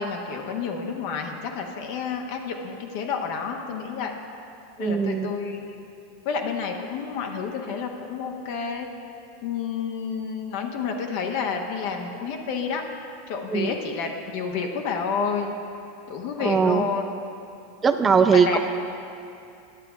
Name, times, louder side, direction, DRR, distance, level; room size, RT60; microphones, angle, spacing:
voice 1, 0.0-4.1 4.8-5.8 6.2-8.9 9.4-12.8 13.3-15.5 16.1-17.1 18.3-18.6, left 5 dB, 60° left, 3 dB, 0.9 m, -30 dB
voice 2, 4.8-5.3 13.5-13.7 16.4-16.9 17.8-18.6, right 6 dB, 25° right, 7 dB, 0.4 m, -20 dB
10.0 x 6.9 x 5.0 m, 2.7 s
hypercardioid pair, 105°, 0 cm